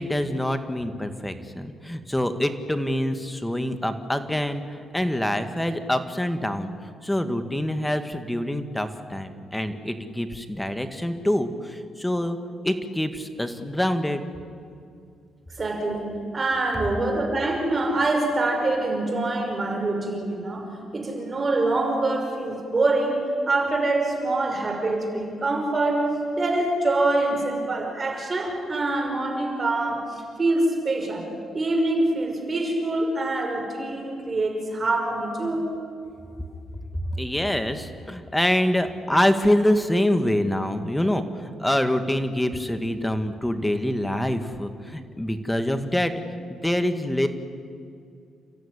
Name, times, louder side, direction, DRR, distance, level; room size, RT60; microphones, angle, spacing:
voice 1, 0.0-6.7 7.0-12.4 12.6-14.2 37.1-46.1 46.5-47.3, left 1 dB, 5° left, 8 dB, 1.9 m, -25 dB
voice 2, 15.6-31.3 31.5-35.7, right 2 dB, 30° right, 2 dB, 5.8 m, -25 dB
30.0 x 14.0 x 10.0 m, 2.4 s
cardioid pair, 95°, 0 cm